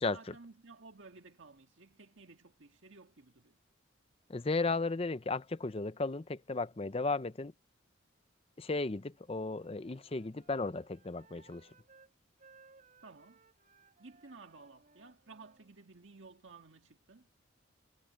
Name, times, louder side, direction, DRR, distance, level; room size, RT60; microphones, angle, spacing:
voice 1, 0.0-3.6 13.0-13.4 14.0-17.3, right 3 dB, 75° right, 1.8 m, -55 dB
voice 2, 4.3-7.5 8.6-11.7, left 3 dB, 30° left, 0.6 m, -35 dB
Wind instrument woodwind instrument, 9.3-12.1 12.4-15.7, right 4 dB, 40° right, 7.0 m, -64 dB
head